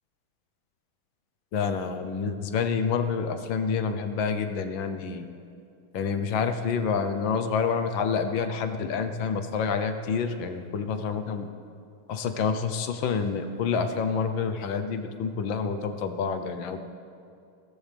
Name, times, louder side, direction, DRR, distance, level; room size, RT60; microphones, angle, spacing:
voice 1, 1.5-5.3 5.9-11.5 12.1-16.8, left 6 dB, 70° left, 7 dB, 1.6 m, -28 dB
22.0 x 16.0 x 3.5 m, 2.5 s
omnidirectional pair, 2.3 m